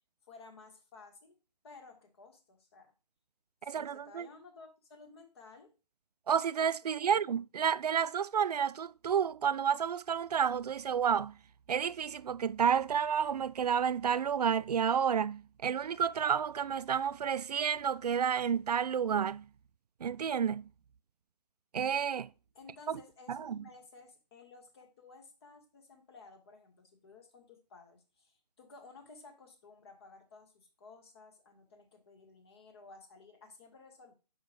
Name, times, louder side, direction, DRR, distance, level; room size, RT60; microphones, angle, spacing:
voice 1, 0.3-1.4 1.6-2.9 3.6-5.8 6.8-7.1 22.5-34.1, left 4 dB, 40° left, 1.7 m, -55 dB
voice 2, 3.7-4.3 6.3-11.4 11.7-19.4 20.0-20.7 21.7-22.3 22.9-23.0 23.3-23.6, right 7 dB, 70° right, 0.4 m, -30 dB
6.1 x 5.1 x 5.0 m
hypercardioid pair, 160°, 21 cm